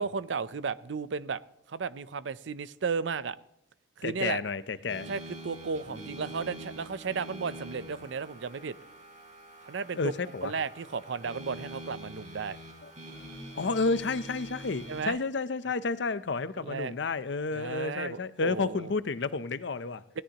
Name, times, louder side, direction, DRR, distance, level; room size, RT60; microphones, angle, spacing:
voice 1, 0.0-1.4 1.7-3.4 4.0-4.4 5.1-8.8 9.6-10.1 10.4-12.6 14.9-15.2 16.6-16.9 17.5-18.9 20.1-20.2, right 5 dB, 75° right, 0.5 m, -34 dB
voice 2, 4.0-5.1 9.9-10.5 12.8-12.9 13.6-20.0, left 4 dB, 65° left, 0.6 m, -31 dB
sound 1, 4.9-15.1, equal, 40° right, 3.5 m, -45 dB
Bass guitar, 5.9-9.9, right 4 dB, 30° left, 6.5 m, -54 dB
20.0 x 17.0 x 2.9 m
head